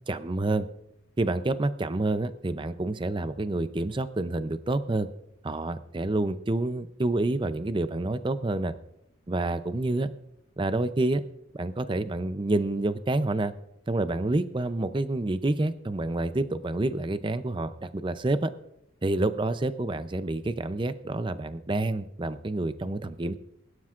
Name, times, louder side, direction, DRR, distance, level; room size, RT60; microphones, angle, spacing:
voice 1, 0.1-0.7 1.2-5.1 5.4-8.7 9.3-10.1 10.6-11.2 11.5-13.5 13.9-18.5 19.0-23.3, right 2 dB, 25° right, 11 dB, 0.5 m, -28 dB
22.0 x 12.0 x 2.5 m, 0.79 s
head